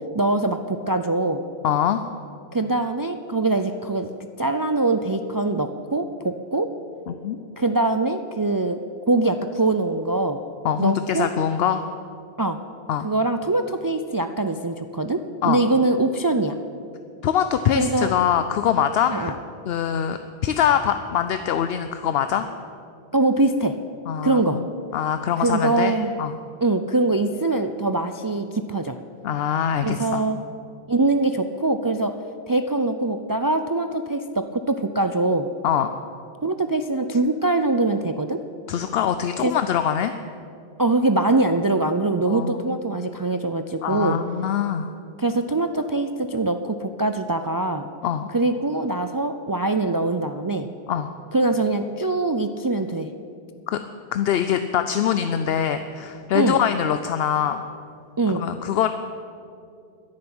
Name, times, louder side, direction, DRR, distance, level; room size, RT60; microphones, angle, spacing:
voice 1, 0.1-1.4 2.5-4.1 4.4-6.7 7.6-8.8 9.1-10.4 10.8-11.3 12.4-12.6 13.0-16.6 17.7-18.1 19.1-19.3 23.1-23.8 24.2-24.6 25.4-26.1 26.6-29.0 29.8-30.4 30.9-32.1 32.5-35.5 36.4-38.4 39.4-39.5 40.8-44.2 45.2-47.9 48.3-50.7 51.3-53.1 56.3-56.6 58.2-58.4, right 2 dB, 35° right, 8 dB, 0.3 m, -23 dB
voice 2, 1.6-2.0 7.1-7.4 10.6-11.8 12.9-13.1 15.4-15.6 17.2-19.3 19.7-22.5 24.1-24.6 24.9-26.4 29.2-30.2 35.6-35.9 38.7-40.1 42.3-42.8 43.8-44.9 48.0-48.3 50.9-51.1 53.7-53.8 54.1-57.6 58.3-58.9, left 9 dB, 75° left, 9 dB, 0.8 m, -23 dB
10.5 x 10.5 x 8.8 m, 2.5 s
omnidirectional pair, 1.0 m